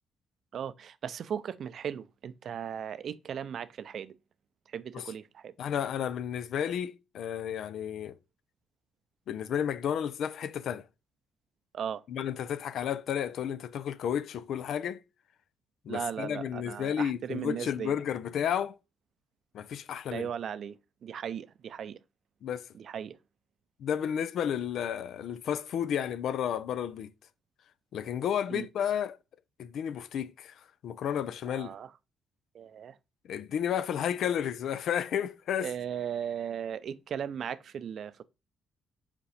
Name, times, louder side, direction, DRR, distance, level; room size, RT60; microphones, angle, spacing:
voice 1, 0.5-4.1 4.7-5.5 11.7-12.0 15.9-17.9 20.1-20.8 21.0-22.0 22.7-23.2 28.5-28.7 31.5-31.9 32.5-33.0 35.6-38.2, right 8 dB, 60° right, 0.5 m, -37 dB
voice 2, 5.6-8.2 9.3-10.8 12.1-15.0 15.9-18.8 19.5-20.3 22.4-22.7 23.8-27.1 27.9-29.2 29.6-30.5 30.8-31.7 33.3-35.7, left 9 dB, 70° left, 0.6 m, -32 dB
5.3 x 5.2 x 4.9 m
cardioid pair, 90°, 0 cm